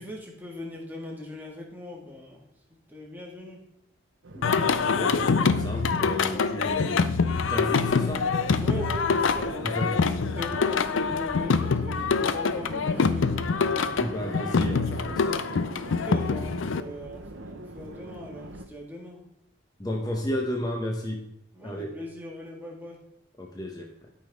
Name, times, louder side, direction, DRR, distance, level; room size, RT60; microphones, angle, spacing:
voice 1, 0.0-2.5 2.9-3.6 6.3-6.9 8.6-13.3 15.9-19.2 21.5-23.0, left 1 dB, 10° right, -1 dB, 1.7 m, -40 dB
sound 1, 4.2-18.7, right 2 dB, 80° right, 0.8 m, -42 dB
voice 2, 4.3-7.1 7.5-8.3 9.6-10.0 14.0-15.9 19.8-21.3 21.6-21.9 23.4-24.1, equal, 20° left, 0 dB, 1.0 m, -33 dB
Singing, 4.4-16.8, left 5 dB, 80° left, 0.5 m, -25 dB
12.5 x 5.6 x 3.5 m, 0.80 s
head